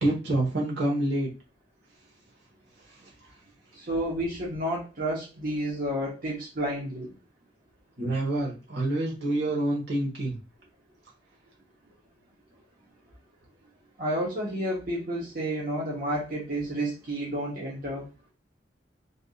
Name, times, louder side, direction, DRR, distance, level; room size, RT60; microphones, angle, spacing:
voice 1, 0.0-1.3 8.0-10.4, right 1 dB, 75° right, -2 dB, 1.2 m, -27 dB
voice 2, 3.7-7.1 14.0-18.1, right 1 dB, 50° right, -5 dB, 1.0 m, -30 dB
3.4 x 2.6 x 2.3 m, 0.30 s
head